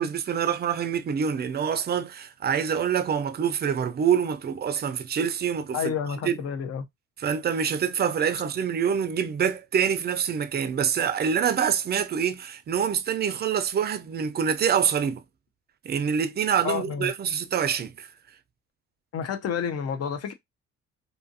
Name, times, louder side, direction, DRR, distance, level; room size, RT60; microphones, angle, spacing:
voice 1, 0.0-5.9 6.2-6.4 7.2-15.2 15.8-18.1, right 7 dB, 35° right, 0.4 m, -26 dB
voice 2, 5.7-6.8 16.6-17.1 19.1-20.3, left 7 dB, 55° left, 0.6 m, -29 dB
2.6 x 2.5 x 2.6 m
cardioid pair, 90°, 30 cm